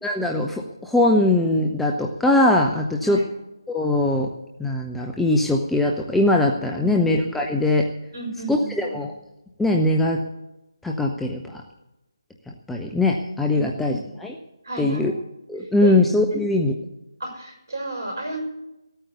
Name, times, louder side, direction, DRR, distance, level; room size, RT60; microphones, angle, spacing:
voice 1, 0.0-3.2 3.7-4.3 4.6-7.9 8.5-9.1 9.6-10.2 10.8-11.6 12.7-14.4 14.8-15.1 15.5-16.7, left 2 dB, ahead, 0 dB, 0.6 m, -21 dB
voice 2, 6.7-7.0 8.1-9.0 13.5-14.0 14.6-15.1 15.8-15.9 17.2-18.4, right 3 dB, 50° right, 2 dB, 5.7 m, -33 dB
16.0 x 9.1 x 8.1 m, 0.95 s
figure-of-eight pair, 155°, 2 cm